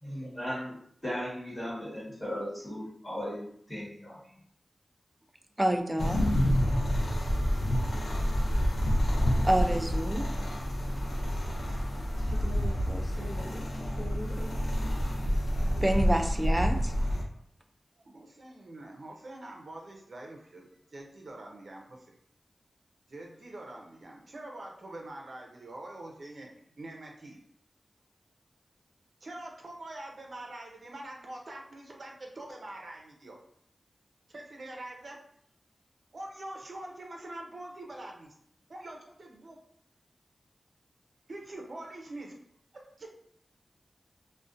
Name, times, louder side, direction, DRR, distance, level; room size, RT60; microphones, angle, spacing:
voice 1, 0.0-4.3, equal, 25° left, -6 dB, 1.2 m, -37 dB
voice 2, 5.6-6.2 9.4-10.2 15.8-16.9, right 1 dB, 20° right, 4 dB, 0.3 m, -27 dB
sound 1, 6.0-17.2, equal, 85° left, 0.4 m, -28 dB
voice 3, 12.2-14.5, left 1 dB, 50° left, -1 dB, 0.6 m, -43 dB
voice 4, 18.0-22.1 23.1-26.5 26.8-27.4 29.2-33.4 34.3-35.2 36.1-38.3 38.7-39.6 41.3-42.3 43.0-43.3, right 1 dB, 65° right, 0 dB, 0.6 m, -44 dB
2.4 x 2.1 x 2.5 m, 0.65 s
wide cardioid pair, 60°, 0 cm